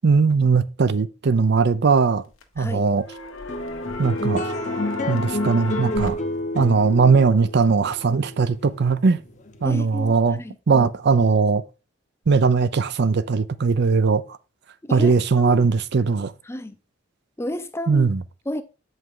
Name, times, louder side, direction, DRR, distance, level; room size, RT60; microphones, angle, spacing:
voice 1, 0.0-2.2 2.6-3.0 4.0-4.5 5.1-6.2 6.5-9.2 9.6-10.4 10.7-11.6 12.3-14.2 14.9-16.3 17.9-18.2, right 4 dB, 55° right, 0.5 m, -19 dB
sound 1, 1.9-2.7 3.0-6.1, left 3 dB, 80° left, 1.4 m, -33 dB
sound 2, 3.5-10.1, left 1 dB, 35° left, 0.8 m, -29 dB
voice 2, 9.6-10.9 14.8-15.6 16.4-16.8 17.4-18.1 18.5-18.6, left 1 dB, 15° left, 0.6 m, -32 dB
8.1 x 5.3 x 3.7 m
head